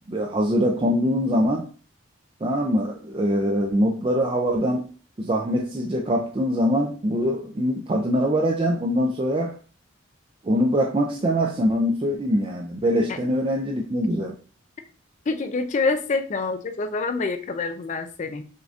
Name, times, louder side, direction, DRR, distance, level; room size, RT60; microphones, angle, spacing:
voice 1, 0.1-1.7 2.4-4.9 5.2-9.6 10.4-14.3, equal, 30° right, 2 dB, 0.4 m, -23 dB
voice 2, 15.3-18.5, left 3 dB, 40° left, 8 dB, 0.4 m, -26 dB
6.4 x 2.6 x 2.4 m, 0.39 s
head